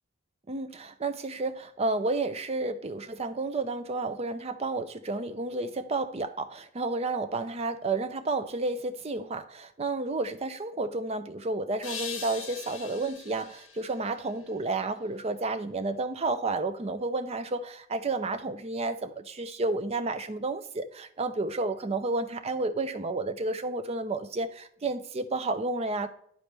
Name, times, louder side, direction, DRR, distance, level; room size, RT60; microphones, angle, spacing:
voice 1, 0.5-26.1, right 3 dB, 30° right, 0.5 m, -31 dB
sound 1, 11.8-15.0, left 6 dB, 70° left, 1.2 m, -42 dB
11.5 x 4.1 x 3.3 m
head